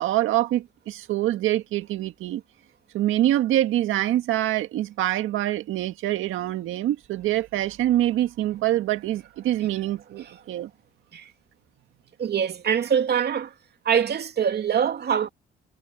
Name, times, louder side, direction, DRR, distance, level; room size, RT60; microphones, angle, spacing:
voice 1, 0.0-2.4 2.9-10.7, right 14 dB, 85° right, 1.8 m, -25 dB
voice 2, 12.2-13.5 13.8-15.3, right 8 dB, 55° right, 2.7 m, -24 dB
cardioid pair, 90°, 20 cm